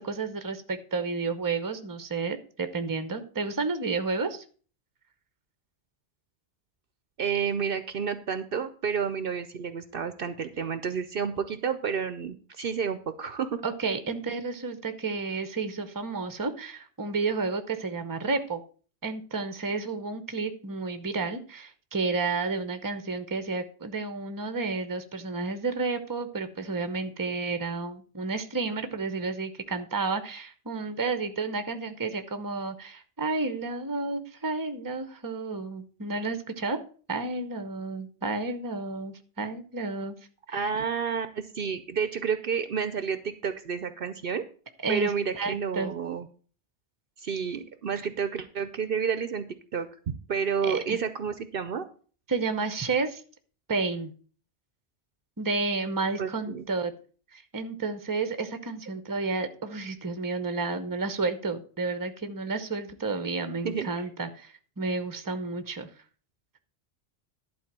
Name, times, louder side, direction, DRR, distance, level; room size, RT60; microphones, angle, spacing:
voice 1, 0.0-4.4 13.6-18.6 19.0-36.8 37.1-40.1 40.5-40.7 44.8-45.9 50.7-51.0 52.3-53.2 53.7-54.1 55.4-56.9 57.3-65.9, right 4 dB, 20° right, 10 dB, 0.8 m, -31 dB
voice 2, 7.2-13.6 40.5-44.4 44.9-46.3 47.2-49.5 49.7-49.9 50.3-51.8 56.2-56.7 63.6-63.9, right 6 dB, 60° right, 11 dB, 0.8 m, -30 dB
11.5 x 4.2 x 7.4 m, 0.41 s
omnidirectional pair, 1.1 m